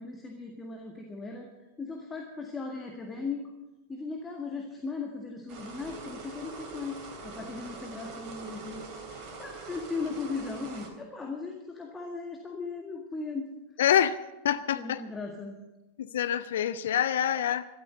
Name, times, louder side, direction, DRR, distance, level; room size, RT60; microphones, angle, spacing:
voice 1, 0.0-1.5 1.8-3.5 3.9-7.0 7.2-8.8 9.2-13.5 14.7-15.6, left 4 dB, 15° left, 1 dB, 1.9 m, -37 dB
sound 1, 5.5-10.9, right 4 dB, 40° right, 3.3 m, -43 dB
voice 2, 13.8-14.2 14.4-15.0 16.0-17.7, left 10 dB, 60° left, 14 dB, 0.5 m, -26 dB
13.0 x 13.0 x 6.6 m, 1.0 s
figure-of-eight pair, 90°, 0 cm